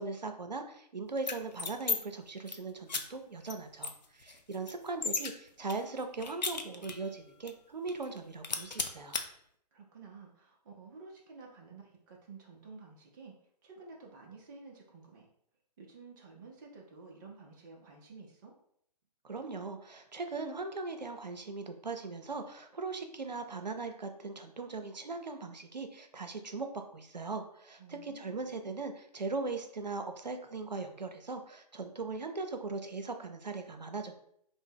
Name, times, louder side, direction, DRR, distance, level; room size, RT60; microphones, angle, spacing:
voice 1, 0.0-9.2 19.2-34.2, right 3 dB, 90° right, 6 dB, 0.5 m, -39 dB
sound 1, 1.2-2.0 2.3-2.6 2.9-3.0 3.5-3.6 3.8-5.3 5.7-7.1 7.5-7.6 7.9-8.2 8.4-9.2, left 4 dB, 85° left, 0.4 m, -35 dB
voice 2, 9.7-13.3 13.6-15.3 15.8-18.5 27.8-28.5, right 4 dB, 30° right, -1 dB, 0.5 m, -52 dB
3.4 x 2.0 x 3.4 m, 0.69 s
figure-of-eight pair, 130°, 21 cm